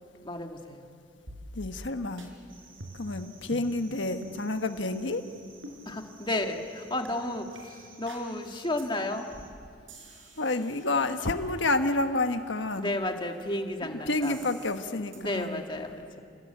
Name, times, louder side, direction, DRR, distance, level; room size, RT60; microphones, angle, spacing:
voice 1, 0.2-0.8 5.9-9.3 12.8-14.4 15.1-16.2, left 1 dB, 25° left, 4 dB, 1.8 m, -32 dB
sound 1, 1.3-1.9 2.2-2.3 2.8-3.2 3.5-3.7 4.2-4.4 4.9-5.2 5.6-5.8 6.3-6.5 7.1-7.2 7.6-7.7 8.1-8.3 8.8-8.9 9.2-9.5 9.9-11.7 14.2-14.8 15.1-15.2, right 1 dB, 75° right, 4.8 m, -46 dB
voice 2, 1.5-2.3 3.0-5.2 10.4-13.0 13.8-15.6, left 2 dB, 65° left, 7 dB, 1.4 m, -29 dB
sound 2, 2.5-9.5, right 4 dB, 50° right, 5.0 m, -55 dB
30.0 x 20.0 x 9.0 m, 2.3 s
head